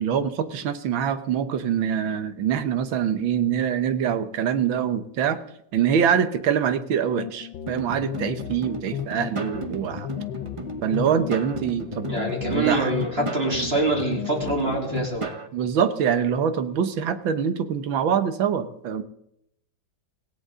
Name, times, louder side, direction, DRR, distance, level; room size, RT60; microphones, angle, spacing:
voice 1, 0.0-5.4 5.7-10.1 10.8-12.1 12.5-12.9 15.5-19.0, right 8 dB, 80° right, 11 dB, 1.8 m, -24 dB
sound 1, 7.2-15.2, left 10 dB, 75° left, 1.5 m, -34 dB
sound 2, 7.7-15.5, right 3 dB, 55° right, 0.3 m, -36 dB
voice 2, 12.1-15.4, right 2 dB, 30° right, -1 dB, 3.6 m, -25 dB
18.0 x 17.0 x 3.7 m, 0.75 s
omnidirectional pair, 2.1 m